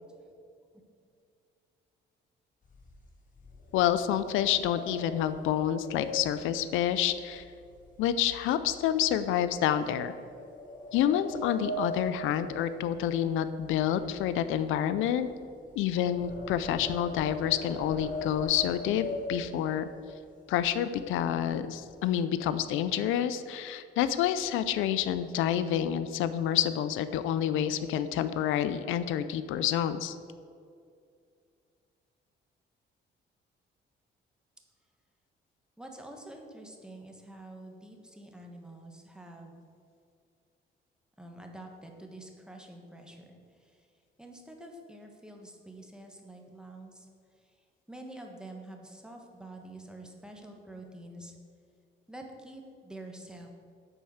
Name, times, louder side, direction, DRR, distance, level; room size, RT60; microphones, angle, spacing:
sound 1, 2.6-8.0 8.3-8.6 9.1-9.3 10.1-13.4 13.7-19.9 20.5-20.6 20.9-21.2 21.5-22.2, left 1 dB, 40° left, 1.8 m, -41 dB
voice 1, 3.7-7.5 8.0-10.1 10.9-15.3 15.8-19.9 20.5-30.2, left 10 dB, 90° left, 12 dB, 0.4 m, -28 dB
voice 2, 35.8-39.6 41.2-43.9 44.2-47.1 47.3-51.3 52.1-53.5, right 1 dB, 5° right, 2 dB, 1.3 m, -47 dB
8.9 x 4.4 x 6.4 m, 2.3 s
cardioid pair, 90°, 20 cm